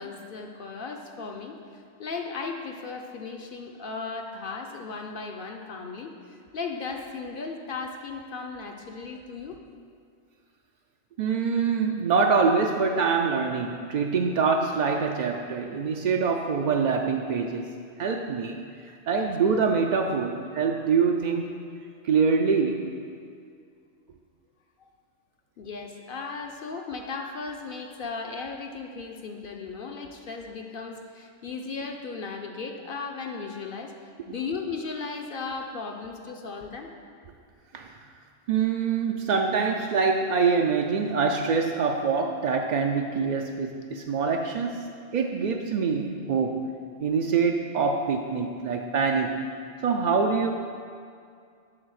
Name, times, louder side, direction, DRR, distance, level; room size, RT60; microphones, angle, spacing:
voice 1, 0.0-9.6 25.6-36.9, left 4 dB, 55° left, 3 dB, 0.7 m, -36 dB
voice 2, 11.2-17.7 18.0-18.6 18.8-21.6 22.0-22.9 37.7-37.9 38.5-44.8 45.1-46.6 47.0-49.4 49.8-50.5, right 5 dB, 60° right, 2 dB, 0.4 m, -25 dB
11.0 x 4.0 x 6.4 m, 2.3 s
omnidirectional pair, 1.2 m